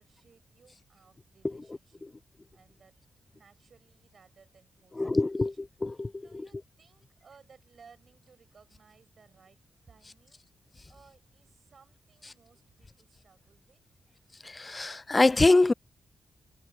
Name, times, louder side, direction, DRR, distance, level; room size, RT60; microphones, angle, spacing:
voice 1, 0.0-2.1 2.5-3.0 3.3-5.7 6.2-9.6 9.9-10.4 10.9-13.9, right 5 dB, 55° right, 6.3 m, -61 dB
voice 2, 5.0-6.3 14.4-15.7, left 2 dB, 25° left, 0.4 m, -24 dB
cardioid pair, 90°, 0 cm